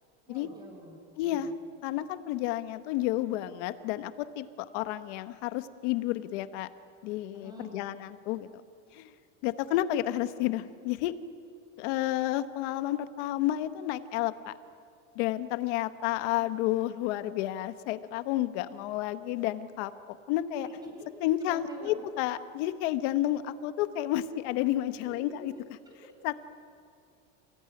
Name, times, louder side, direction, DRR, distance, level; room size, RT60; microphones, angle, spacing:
voice 1, 0.3-1.5 7.3-7.8 20.6-20.7 21.4-22.0 25.0-25.4 25.8-26.1, equal, 10° right, 0 dB, 6.2 m, -48 dB
voice 2, 1.2-1.5 1.8-6.7 7.0-8.5 8.9-9.1 9.4-11.1 11.8-14.5 15.1-19.9 20.3-20.7 21.2-25.5 26.2-26.3, left 14 dB, 65° left, 11 dB, 1.3 m, -31 dB
29.0 x 17.5 x 9.9 m, 2.3 s
cardioid pair, 160°, 37 cm